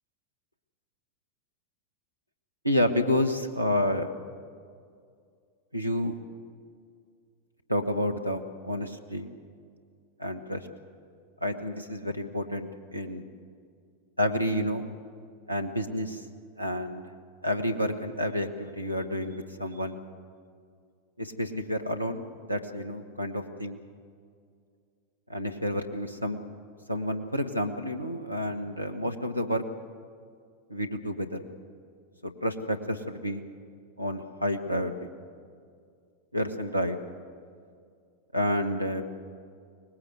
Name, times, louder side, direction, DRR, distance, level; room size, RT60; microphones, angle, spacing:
voice 1, 2.6-4.1 5.7-6.1 7.7-9.3 10.2-10.7 11.4-13.3 14.2-14.9 15.5-16.2 16.6-17.1 17.4-20.0 21.2-23.8 25.3-26.4 26.9-29.6 30.7-31.4 32.2-33.4 34.0-35.1 36.3-37.0 38.3-39.1, left 1 dB, 90° right, 6 dB, 1.3 m, -29 dB
24.0 x 19.5 x 8.0 m, 2.2 s
figure-of-eight pair, 90°, 0 cm